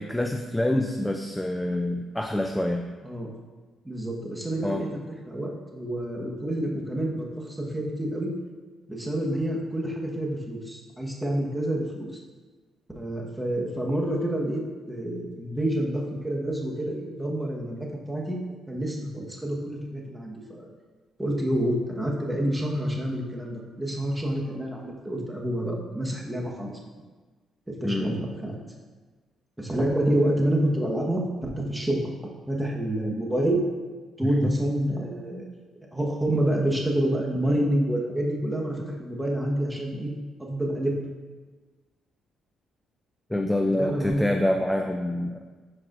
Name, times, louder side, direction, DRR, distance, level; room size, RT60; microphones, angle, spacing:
voice 1, 0.0-2.8 4.6-4.8 27.8-28.1 34.4-34.5 43.3-45.4, left 1 dB, 5° left, 4 dB, 0.4 m, -26 dB
voice 2, 3.8-4.9 5.3-8.3 8.9-12.1 12.9-14.6 14.9-18.4 18.7-20.7 21.2-26.8 27.7-28.6 29.6-32.1 32.4-33.6 34.2-35.5 35.9-40.1 40.4-40.9 43.7-44.3, right 1 dB, 10° right, -1 dB, 1.3 m, -28 dB
10.5 x 4.8 x 2.6 m, 1.3 s
cardioid pair, 90°, 0 cm